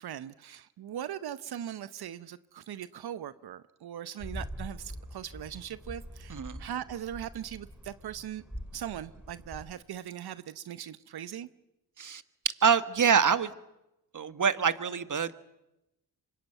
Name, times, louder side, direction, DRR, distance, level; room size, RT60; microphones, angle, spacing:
voice 1, 0.0-8.4 8.7-11.5, right 10 dB, 75° right, 15 dB, 0.8 m, -40 dB
sound 1, 4.2-9.7, equal, ahead, 7.0 m, -44 dB
voice 2, 12.6-13.5 14.1-15.3, right 6 dB, 50° right, 13 dB, 1.5 m, -25 dB
24.5 x 21.0 x 9.3 m, 0.89 s
cardioid pair, 50°, 39 cm